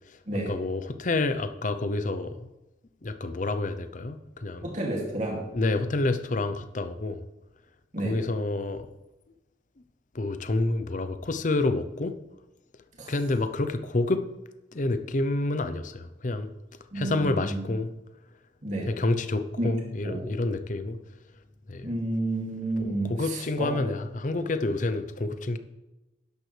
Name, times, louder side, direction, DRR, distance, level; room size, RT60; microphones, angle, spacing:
voice 1, 0.5-2.4 3.0-4.6 5.5-7.2 8.0-8.9 10.1-12.2 13.1-14.3 14.7-16.5 16.9-17.9 18.9-21.0 21.7-21.9 22.8-25.6, left 2 dB, 45° left, 0.7 m, -28 dB
voice 2, 4.6-5.4 7.9-8.2 13.0-13.1 16.9-17.7 18.6-18.9 19.6-19.7 20.0-20.3 21.8-23.8, right 2 dB, 45° right, 2.5 m, -31 dB
12.5 x 10.5 x 3.3 m
head